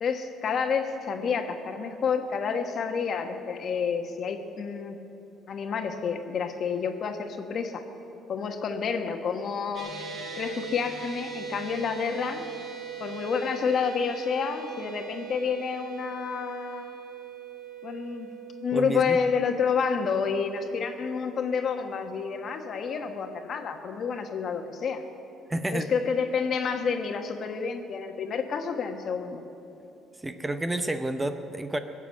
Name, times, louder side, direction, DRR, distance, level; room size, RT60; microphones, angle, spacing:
voice 1, 0.0-5.0 5.5-7.8 8.3-9.9 10.4-12.5 13.0-16.9 17.8-18.3 18.6-25.0 25.7-29.4, left 6 dB, 50° left, 6 dB, 1.2 m, -29 dB
sound 1, 9.7-22.1, right 7 dB, 50° right, 2.2 m, -41 dB
voice 2, 18.7-19.2 25.5-25.9 30.2-31.8, right 1 dB, 15° right, 8 dB, 0.7 m, -30 dB
18.5 x 7.4 x 8.4 m, 2.8 s
cardioid pair, 105°, 0 cm